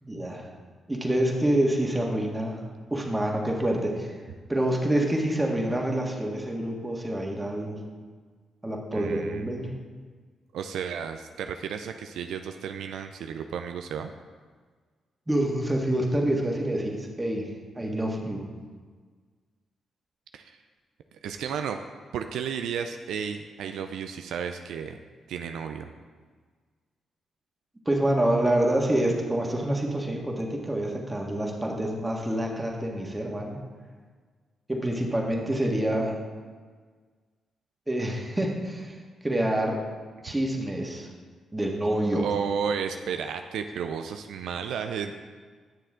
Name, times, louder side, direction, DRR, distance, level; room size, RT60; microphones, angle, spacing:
voice 1, 0.0-0.5 0.9-2.6 2.9-4.1 4.5-7.8 8.6-9.7 15.3-17.5 17.8-18.5 27.9-33.6 34.7-36.2 37.9-39.0 39.2-39.8 40.2-41.1 41.5-42.3, right 1 dB, 15° right, 0 dB, 1.8 m, -27 dB
voice 2, 8.9-9.6 10.5-14.1 20.3-20.6 21.2-21.8 22.1-25.0 25.3-25.9 42.1-45.2, right 7 dB, 80° right, 7 dB, 0.4 m, -33 dB
9.8 x 6.6 x 3.7 m, 1.5 s
supercardioid pair, 55°, 0 cm